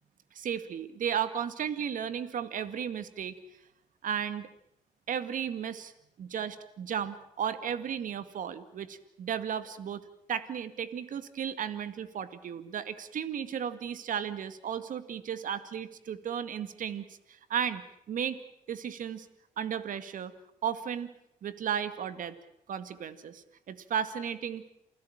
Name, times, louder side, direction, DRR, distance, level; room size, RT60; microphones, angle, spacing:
voice 1, 0.3-3.4 4.0-4.5 5.1-5.9 6.2-10.0 10.3-18.4 18.7-19.3 19.6-20.3 20.6-21.1 21.4-22.4 22.7-24.7, right 8 dB, 70° right, 13 dB, 2.0 m, -34 dB
28.5 x 16.5 x 8.8 m, 0.78 s
supercardioid pair, 55°, 14 cm